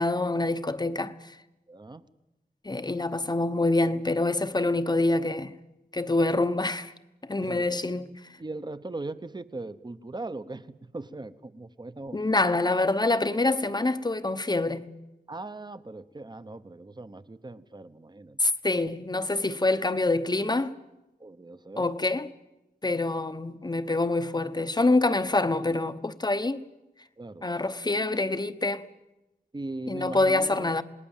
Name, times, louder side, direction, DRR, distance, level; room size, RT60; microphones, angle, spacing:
voice 1, 0.0-1.4 2.6-5.5 5.9-6.9 7.2-8.2 12.1-14.9 18.4-20.8 21.8-22.3 22.8-26.6 27.4-28.9 29.9-30.8, left 2 dB, 25° left, 1.0 m, -26 dB
voice 2, 1.7-2.1 7.4-7.8 8.4-12.4 15.3-18.4 21.2-21.9 27.2-27.5 29.5-30.7, right 2 dB, 25° right, 0.9 m, -39 dB
28.0 x 19.5 x 7.4 m
wide cardioid pair, 105°, 16 cm